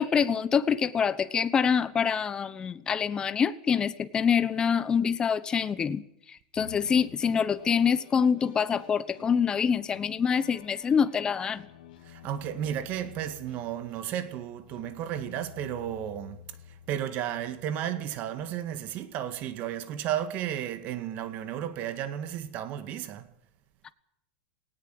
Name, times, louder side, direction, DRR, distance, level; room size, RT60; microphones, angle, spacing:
voice 1, 0.0-6.0 6.3-11.6, left 7 dB, 15° left, 1.0 m, -25 dB
sound 1, 6.5-17.7, left 10 dB, 75° left, 2.9 m, -51 dB
voice 2, 12.0-16.4 16.7-23.3, right 10 dB, 35° right, 1.8 m, -33 dB
18.5 x 17.5 x 7.9 m
supercardioid pair, 155°, 5 cm